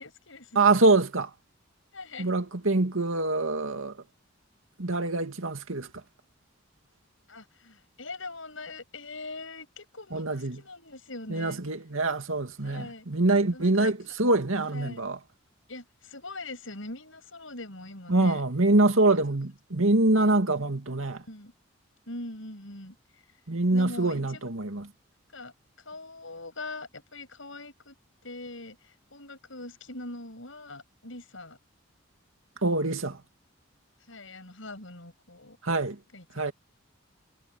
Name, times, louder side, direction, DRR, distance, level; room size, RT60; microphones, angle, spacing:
voice 1, 0.0-0.6 1.9-2.4 7.3-11.6 12.6-13.1 13.5-13.9 14.7-15.0 15.7-18.4 20.2-20.3 21.3-21.5 22.1-23.0 23.7-24.4 25.3-25.5 25.9-28.0 28.2-31.6 34.1-35.6 36.1-36.2, left 2 dB, 70° left, 7.0 m, -42 dB
voice 2, 0.5-1.3 2.2-4.0 4.8-6.0 10.1-10.6 11.3-15.2 18.1-21.2 23.5-24.9 32.6-33.2 35.6-36.0 36.3-36.5, right 2 dB, 80° right, 2.3 m, -25 dB
head